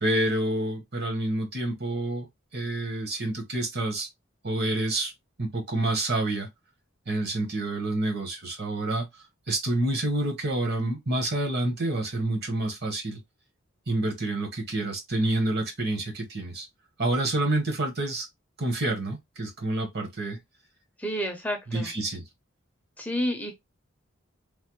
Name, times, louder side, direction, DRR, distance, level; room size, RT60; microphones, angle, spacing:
voice 1, 0.0-2.3 2.5-4.1 4.4-5.1 5.4-6.5 7.1-9.0 9.5-13.2 13.9-16.7 17.0-18.3 18.6-20.4 21.7-22.2, right 2 dB, 55° right, 1.0 m, -28 dB
voice 2, 21.0-21.9 23.0-23.5, equal, 10° left, 0.5 m, -30 dB
3.2 x 2.0 x 2.9 m
head